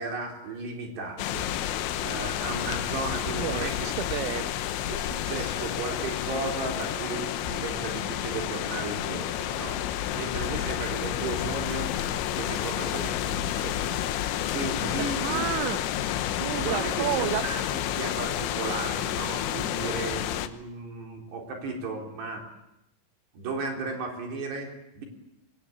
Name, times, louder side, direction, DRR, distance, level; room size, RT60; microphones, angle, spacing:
voice 1, 0.0-1.5 2.0-3.8 4.2-4.4 4.9-9.8 10.1-14.1 14.5-15.4 16.5-22.4 23.3-25.0, right 3 dB, 55° right, 2 dB, 5.8 m, -35 dB
sound 1, 1.2-20.5, left 11 dB, 75° left, 3.0 m, -30 dB
voice 2, 3.3-4.5 14.8-14.9 15.2-15.8 16.4-17.4 18.0-18.1, right 13 dB, 85° right, 10 dB, 3.9 m, -31 dB
26.0 x 22.0 x 8.7 m, 0.83 s
omnidirectional pair, 5.8 m